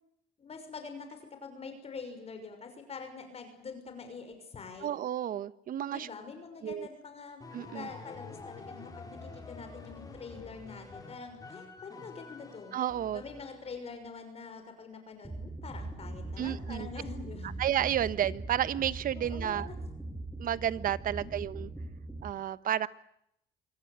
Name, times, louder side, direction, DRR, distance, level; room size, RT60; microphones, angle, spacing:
voice 1, 0.4-4.9 5.9-7.4 7.7-12.8 13.1-17.5 19.1-19.6 21.0-21.3, left 5 dB, 35° left, 6 dB, 6.1 m, -45 dB
voice 2, 4.8-6.1 6.6-6.9 7.5-7.9 12.7-13.2 16.4-16.9 17.6-19.7 20.4-21.7 22.2-22.9, right 11 dB, 55° right, 16 dB, 1.2 m, -31 dB
sound 1, 7.4-13.9, left 3 dB, 20° left, 5.8 m, -48 dB
sound 2, 15.2-22.3, right 2 dB, 10° right, 6.8 m, -41 dB
26.0 x 25.0 x 8.3 m, 0.76 s
cardioid pair, 110°, 17 cm